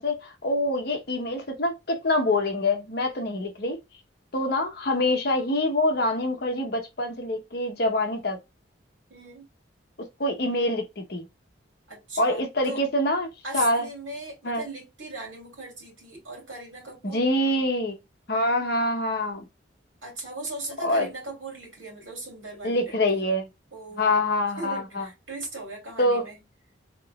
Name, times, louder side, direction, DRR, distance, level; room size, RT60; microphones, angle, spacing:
voice 1, 0.0-3.8 4.3-8.4 10.2-11.3 12.2-13.3 13.5-13.9 14.4-14.6 17.1-18.0 18.3-19.4 20.8-21.1 22.6-23.5 24.0-25.1 26.0-26.2, left 1 dB, 55° left, 0.9 m, -25 dB
voice 2, 9.1-9.5 11.9-12.8 13.4-17.2 20.0-23.3 23.7-24.3 24.6-26.4, right 2 dB, 85° right, 2.7 m, -39 dB
3.9 x 3.7 x 2.3 m
head